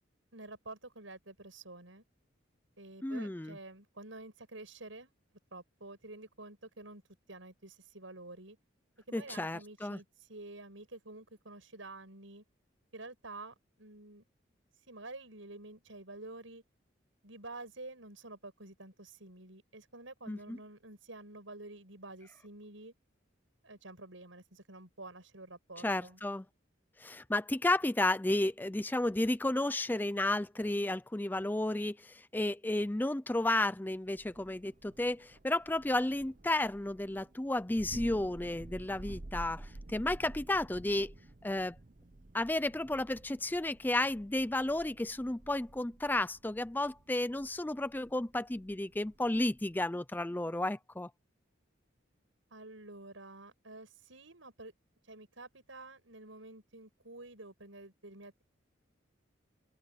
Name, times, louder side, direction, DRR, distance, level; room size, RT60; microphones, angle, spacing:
voice 1, 0.3-2.0 2.8-5.1 5.5-7.0 7.3-8.6 9.1-12.4 12.9-14.2 14.9-16.6 17.2-22.9 23.6-26.2 52.5-54.7 55.1-58.4, right 2 dB, 85° right, 7.2 m, -49 dB
voice 2, 3.0-3.6 9.1-10.0 20.3-20.6 25.8-26.4 27.0-41.1 41.4-41.8 42.3-51.1, left 1 dB, 10° left, 0.4 m, -32 dB
Thunder, 34.1-49.9, right 2 dB, 40° right, 0.8 m, -51 dB
open air
head